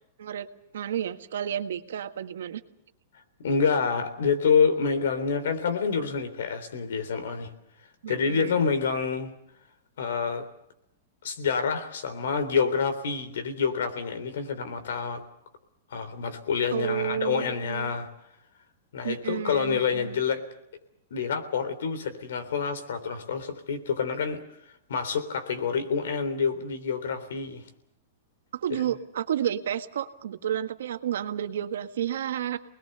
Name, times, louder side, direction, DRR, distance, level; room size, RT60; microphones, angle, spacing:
voice 1, 0.7-2.6 8.0-8.6 16.7-17.9 19.0-20.2 28.5-32.6, right 10 dB, 85° right, 8 dB, 1.6 m, -31 dB
voice 2, 3.4-7.5 8.1-9.3 10.0-10.5 11.2-15.2 15.9-18.1 18.9-20.4 21.1-24.4 24.9-27.6 28.7-28.8, left 5 dB, 85° left, 9 dB, 3.6 m, -27 dB
25.0 x 20.5 x 6.8 m, 0.80 s
supercardioid pair, 165°, 0 cm